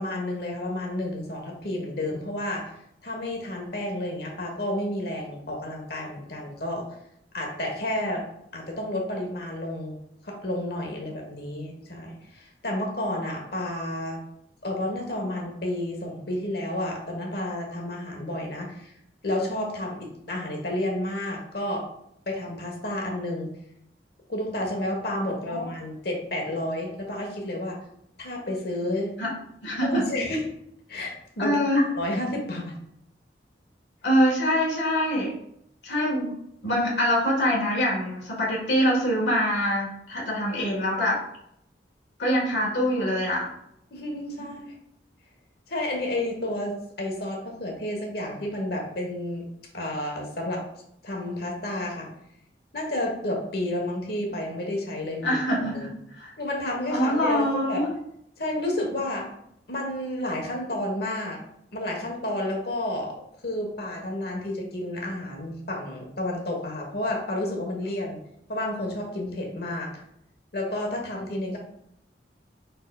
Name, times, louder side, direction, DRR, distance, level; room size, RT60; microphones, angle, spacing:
voice 1, 0.0-2.7 3.0-6.9 7.3-8.2 8.5-10.0 10.2-14.2 14.6-18.9 19.2-21.8 22.3-23.5 24.3-27.8 28.2-29.1 29.8-30.4 30.9-32.7 43.9-44.7 45.7-49.5 49.7-50.6 51.0-52.1 52.7-55.9 56.4-57.8 58.4-59.3 59.7-61.4 61.7-63.1 63.4-68.2 68.5-69.9 70.5-71.6, left 1 dB, 65° left, 1 dB, 1.2 m, -31 dB
voice 2, 29.6-30.0 31.4-31.8 34.0-35.3 35.8-36.4 36.6-41.2 42.2-43.5 55.2-55.9 56.1-56.3 56.9-57.9, equal, 80° left, -3 dB, 1.5 m, -24 dB
4.8 x 4.6 x 2.3 m, 0.75 s
head